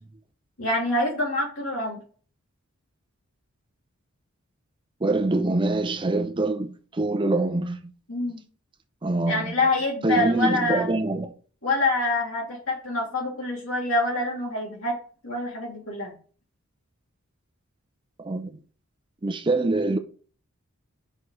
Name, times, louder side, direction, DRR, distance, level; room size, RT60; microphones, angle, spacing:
voice 1, 0.6-2.0 8.1-8.4 9.3-10.9 11.6-15.0 15.2-16.1, left 2 dB, 70° left, 2.9 m, -26 dB
voice 2, 5.0-7.9 9.0-9.5 10.0-11.3 18.2-18.5 19.2-20.0, right 2 dB, 20° right, 0.5 m, -24 dB
5.5 x 4.5 x 4.7 m
head